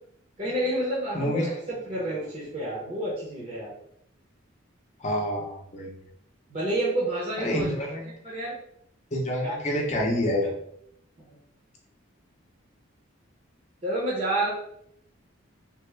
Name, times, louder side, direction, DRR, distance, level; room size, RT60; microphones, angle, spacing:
voice 1, 0.4-3.7 6.5-7.7 8.2-8.6 9.4-9.6 11.3-11.4 13.8-14.5, right 1 dB, 35° right, -6 dB, 0.7 m, -29 dB
voice 2, 1.1-1.5 5.0-6.0 7.4-8.1 9.1-10.5, equal, 35° left, -1 dB, 0.6 m, -27 dB
3.3 x 2.1 x 3.2 m, 0.71 s
head